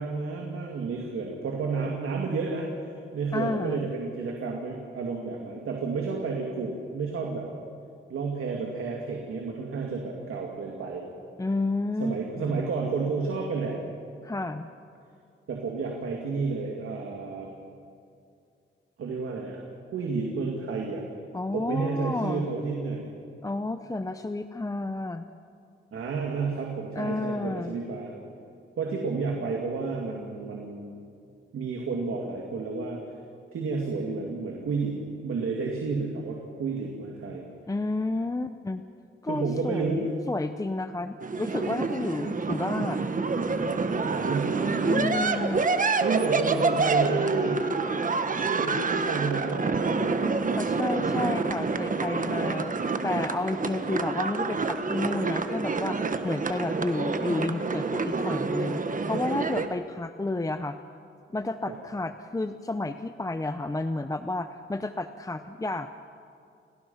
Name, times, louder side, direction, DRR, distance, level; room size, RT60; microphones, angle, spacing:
voice 1, 0.0-7.5 8.1-11.0 12.0-13.8 15.5-17.5 19.0-19.6 19.9-21.0 21.5-23.1 25.9-28.1 28.8-31.0 31.5-33.0 33.5-37.4 39.3-40.1 44.0-45.3 46.0-47.6 48.5-49.9 61.7-61.8, right 4 dB, 85° right, 0 dB, 2.6 m, -31 dB
voice 2, 3.3-3.9 11.4-12.6 14.2-14.7 21.3-22.5 23.4-25.3 27.0-27.8 37.7-38.8 39.2-43.0 44.8-45.6 50.2-60.8 61.3-65.9, left 2 dB, 15° left, 9 dB, 0.7 m, -31 dB
sound 1, 41.2-59.7, right 4 dB, 40° right, 1.3 m, -27 dB
30.0 x 18.5 x 5.8 m, 2.4 s
cardioid pair, 95°, 21 cm